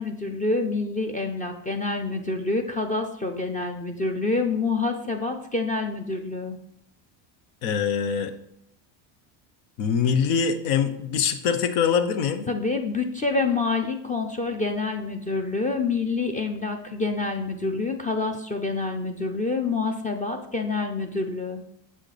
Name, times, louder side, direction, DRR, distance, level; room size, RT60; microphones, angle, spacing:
voice 1, 0.0-6.6 12.5-21.6, left 3 dB, 15° left, 5 dB, 0.4 m, -27 dB
voice 2, 7.6-8.3 9.8-12.5, left 7 dB, 85° left, 9 dB, 1.0 m, -24 dB
7.3 x 6.3 x 3.3 m, 0.73 s
cardioid pair, 130°, 48 cm